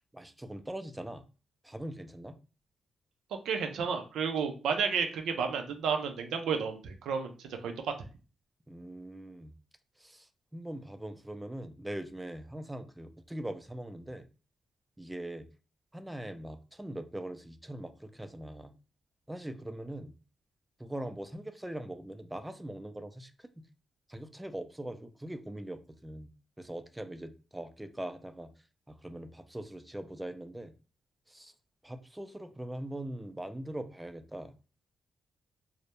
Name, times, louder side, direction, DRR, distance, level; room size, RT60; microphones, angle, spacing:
voice 1, 0.1-1.2 1.6-2.3 8.7-9.5 10.0-14.2 15.0-15.5 15.9-18.7 19.3-20.1 20.8-23.5 24.1-26.3 26.6-28.5 28.9-30.7 31.3-31.5 31.8-34.5, right 1 dB, 10° right, 8 dB, 0.3 m, -41 dB
voice 2, 3.5-7.9, right 6 dB, 85° right, 5 dB, 0.4 m, -32 dB
2.2 x 2.0 x 2.8 m, 0.35 s
supercardioid pair, 60°, 0 cm